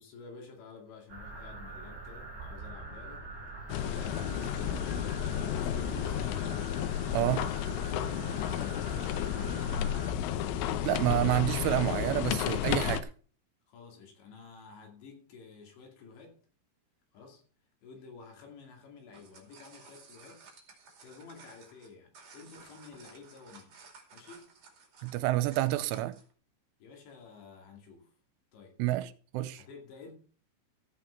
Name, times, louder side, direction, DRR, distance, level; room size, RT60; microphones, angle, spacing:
voice 1, 0.0-3.3 3.8-6.4 8.2-9.8 13.7-16.4 17.1-17.4 17.8-20.5 21.0-23.8 24.1-24.5 26.8-28.1 28.5-28.8 29.6-30.1, left 5 dB, 65° left, 4.7 m, -51 dB
sound 1, 1.1-10.1, right 3 dB, 25° right, 2.4 m, -44 dB
sound 2, 3.7-13.0, left 10 dB, 85° left, 3.3 m, -32 dB
voice 2, 7.1-7.5 10.8-13.1 25.0-26.2 28.8-29.6, right 15 dB, 85° right, 3.2 m, -29 dB
sound 3, 19.0-26.3, right 4 dB, 40° right, 3.1 m, -55 dB
14.5 x 7.9 x 4.5 m
omnidirectional pair, 5.6 m